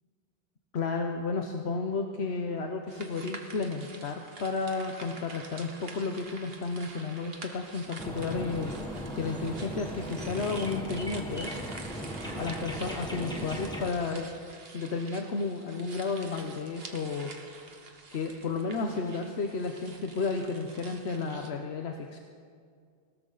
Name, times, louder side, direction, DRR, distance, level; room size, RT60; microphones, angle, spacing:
voice 1, 0.7-8.7 9.1-11.6 12.4-14.3 14.7-17.3 18.1-22.2, left 4 dB, 90° left, 4 dB, 1.2 m, -32 dB
sound 1, 2.9-21.5, right 3 dB, 70° right, 1.6 m, -47 dB
sound 2, 8.0-13.9, equal, 5° left, 1.4 m, -38 dB
20.0 x 18.0 x 4.0 m, 2.1 s
omnidirectional pair, 1.1 m